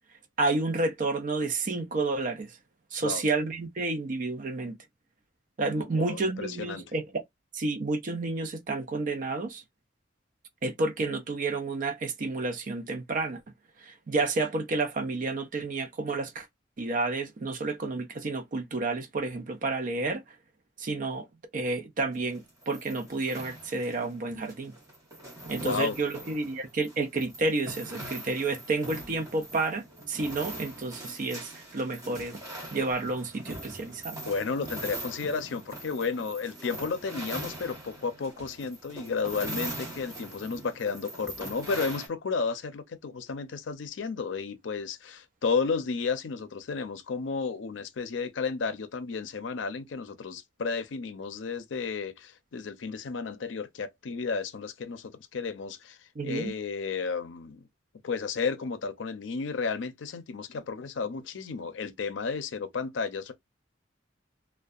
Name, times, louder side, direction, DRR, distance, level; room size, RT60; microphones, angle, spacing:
voice 1, 0.4-2.5 2.9-4.8 5.6-7.2 7.5-9.6 10.6-13.4 13.8-16.5 16.8-20.2 20.8-21.3 21.5-24.7 25.5-32.4 32.7-34.2 56.2-56.5, right 3 dB, 45° right, 0.5 m, -30 dB
voice 2, 5.9-6.8 25.6-26.0 34.2-57.7 58.0-63.3, left 5 dB, 75° left, 0.5 m, -32 dB
sound 1, 22.1-42.1, right 1 dB, 20° right, 0.9 m, -42 dB
2.6 x 2.2 x 2.3 m
head